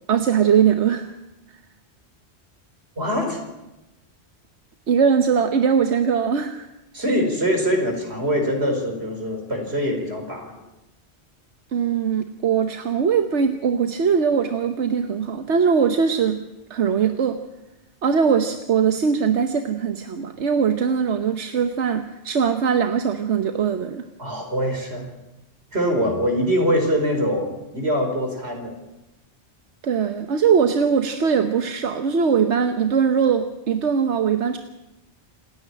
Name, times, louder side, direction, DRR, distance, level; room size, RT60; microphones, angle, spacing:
voice 1, 0.1-1.1 4.9-6.7 11.7-16.4 16.7-17.4 18.0-24.0 29.8-34.6, right 6 dB, 90° right, 7 dB, 1.3 m, -21 dB
voice 2, 3.0-3.4 6.9-10.5 24.2-25.1 25.7-28.7, equal, 70° right, 3 dB, 4.9 m, -23 dB
28.0 x 9.7 x 9.9 m, 0.97 s
omnidirectional pair, 1.1 m